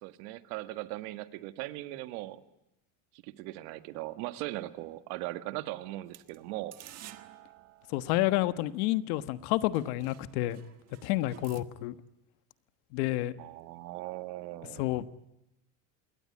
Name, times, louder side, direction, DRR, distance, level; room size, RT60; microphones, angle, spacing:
voice 1, 0.0-2.4 3.1-6.8 13.4-14.9, right 17 dB, 70° right, 11 dB, 1.8 m, -39 dB
sound 1, 6.1-8.8 9.4-9.5 9.7-11.6, right 13 dB, 35° right, 1.4 m, -52 dB
voice 2, 7.9-10.6 11.0-12.0 12.9-13.3 14.8-15.1, left 16 dB, 70° left, 13 dB, 1.5 m, -29 dB
27.5 x 21.5 x 9.8 m, 0.88 s
cardioid pair, 180°, 46 cm